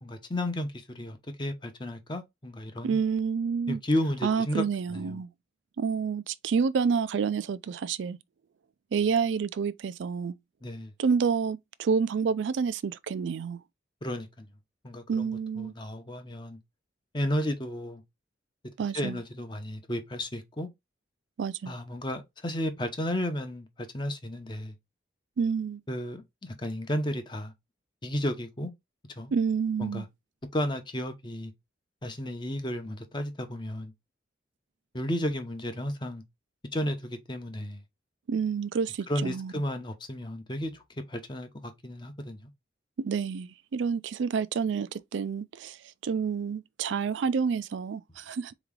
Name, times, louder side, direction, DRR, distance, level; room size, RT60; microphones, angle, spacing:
voice 1, 0.0-3.0 3.7-4.6 4.9-5.2 10.6-10.9 14.0-14.5 14.8-16.6 17.1-18.0 18.9-20.7 21.7-24.7 25.9-27.5 28.0-28.7 29.2-29.3 29.8-30.1 30.5-31.5 32.0-33.9 34.9-36.2 36.7-37.8 39.1-40.8 41.1-42.5, left 1 dB, 25° left, 0.8 m, -33 dB
voice 2, 2.8-3.8 4.2-5.3 5.8-8.2 8.9-10.3 11.0-13.6 15.1-15.7 18.8-19.2 21.4-21.7 25.4-25.8 29.3-30.1 38.3-39.5 43.0-45.8 46.0-48.5, right 6 dB, 80° right, 0.4 m, -28 dB
4.0 x 3.0 x 3.6 m
head